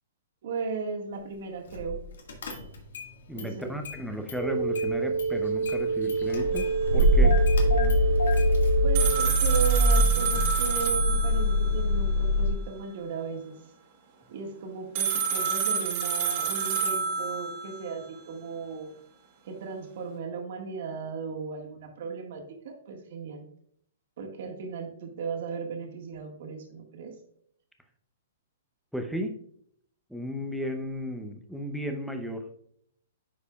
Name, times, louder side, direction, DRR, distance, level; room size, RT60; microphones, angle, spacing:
voice 1, 0.4-2.0 3.3-3.8 7.6-7.9 8.8-13.5 14.3-18.9 19.4-23.4 24.2-27.1, right 5 dB, 55° right, 2 dB, 1.6 m, -36 dB
Car / Engine starting, 1.7-2.0 2.3-3.1 3.4-4.4 4.7-12.5, equal, 80° left, 1.7 m, -24 dB
voice 2, 3.3-7.5 28.9-29.4 30.1-32.5, equal, ahead, 4 dB, 0.6 m, -34 dB
sound 1, 4.3-9.3, right 4 dB, 75° right, 0.6 m, -28 dB
sound 2, 8.9-11.8 14.9-17.9, right 6 dB, 40° right, 1.2 m, -28 dB
9.7 x 4.8 x 2.3 m, 0.68 s
hypercardioid pair, 155°, 0 cm